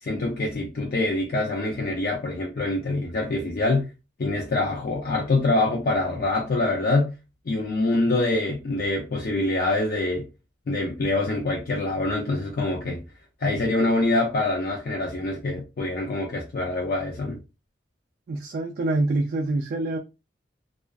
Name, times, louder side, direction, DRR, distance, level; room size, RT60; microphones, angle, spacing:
voice 1, 0.0-3.9 4.2-7.1 7.5-10.3 10.7-13.0 13.4-17.4, left 2 dB, 55° left, 0.5 m, -25 dB
voice 2, 18.3-20.0, right 2 dB, 55° right, 0.3 m, -25 dB
2.4 x 2.3 x 2.3 m
head